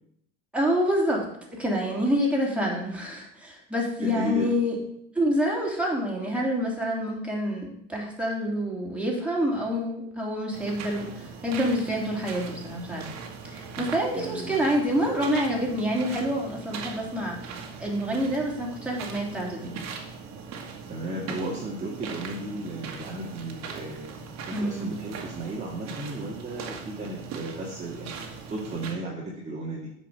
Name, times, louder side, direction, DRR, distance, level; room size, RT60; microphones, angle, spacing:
voice 1, 0.5-1.2 1.6-4.8 5.1-13.1 13.5-19.8 24.5-24.9, equal, 5° right, -3 dB, 3.2 m, -27 dB
voice 2, 4.0-4.5 14.1-14.6 20.9-24.2 24.4-28.1 28.5-29.9, right 1 dB, 20° right, -3 dB, 1.9 m, -34 dB
sound 1, 10.5-28.9, right 5 dB, 60° right, 1.9 m, -40 dB
8.3 x 5.3 x 6.7 m, 0.74 s
supercardioid pair, 100°, 31 cm